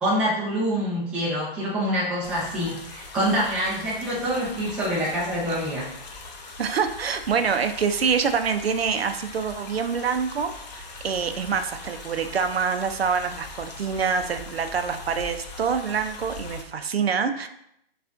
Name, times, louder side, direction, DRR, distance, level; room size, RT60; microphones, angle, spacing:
voice 1, 0.0-5.9, equal, 5° right, -7 dB, 0.5 m, -26 dB
sound 1, 2.2-16.6, left 3 dB, 45° left, 0.7 m, -41 dB
voice 2, 6.6-17.5, right 6 dB, 80° right, 8 dB, 0.6 m, -26 dB
5.9 x 2.4 x 2.5 m, 0.74 s
figure-of-eight pair, 140°, 30 cm